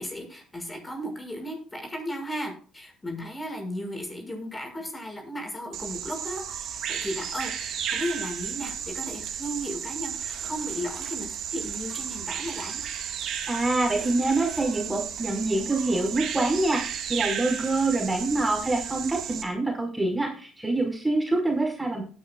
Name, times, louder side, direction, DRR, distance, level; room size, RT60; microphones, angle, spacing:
voice 1, 0.0-12.8 18.6-18.7, equal, 20° left, 2 dB, 6.5 m, -35 dB
Bird vocalization bird call bird song, 5.7-19.4, right 8 dB, 60° right, 3.0 m, -33 dB
voice 2, 13.5-22.0, right 2 dB, 15° right, 1 dB, 5.2 m, -26 dB
18.5 x 10.0 x 2.5 m, 0.40 s
hypercardioid pair, 55°, 0 cm